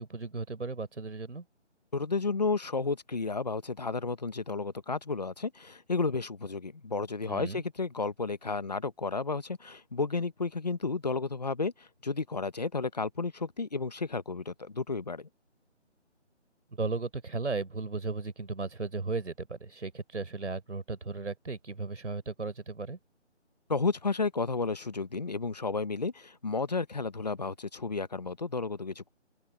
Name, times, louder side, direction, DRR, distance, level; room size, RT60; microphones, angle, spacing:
voice 1, 0.0-1.4 7.3-7.6 16.7-23.0, right 3 dB, 75° right, 4.0 m, -35 dB
voice 2, 1.9-15.3 23.7-29.1, left 4 dB, 35° left, 1.1 m, -32 dB
open air
figure-of-eight pair, 175°, 36 cm